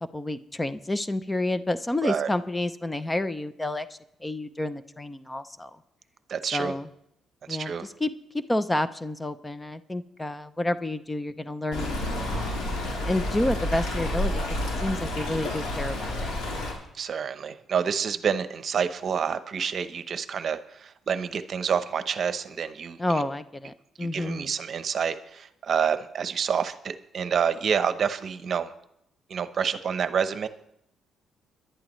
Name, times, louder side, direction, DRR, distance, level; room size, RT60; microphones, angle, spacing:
voice 1, 0.1-5.7 6.5-6.9 7.5-7.7 8.0-11.9 13.0-14.4 14.8-16.3 23.0-24.5, left 1 dB, 15° left, 13 dB, 0.6 m, -29 dB
voice 2, 6.3-6.7 7.5-7.9 16.9-23.3 24.0-28.7 29.3-30.5, right 7 dB, 55° right, 11 dB, 0.8 m, -28 dB
Stream, 11.7-16.7, left 1 dB, 80° left, 4.2 m, -30 dB
22.0 x 11.5 x 3.1 m, 0.77 s
cardioid pair, 90°, 0 cm